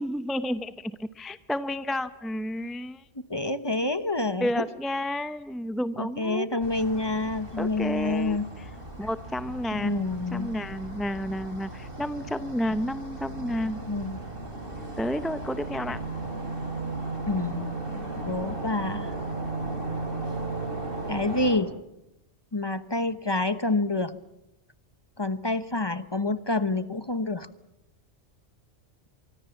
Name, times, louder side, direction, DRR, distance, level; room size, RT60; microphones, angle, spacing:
voice 1, 0.0-3.0 4.4-6.5 7.6-8.6 9.0-13.8 15.0-16.0, left 1 dB, ahead, 12 dB, 0.7 m, -31 dB
voice 2, 3.3-4.6 6.0-8.4 9.7-10.5 13.9-14.2 17.3-19.1 21.1-21.7 22.5-24.1 25.2-27.5, left 2 dB, 25° left, 12 dB, 1.0 m, -28 dB
sound 1, 6.6-21.6, right 2 dB, 50° right, 4.8 m, -36 dB
24.5 x 24.5 x 7.2 m, 0.88 s
omnidirectional pair, 1.2 m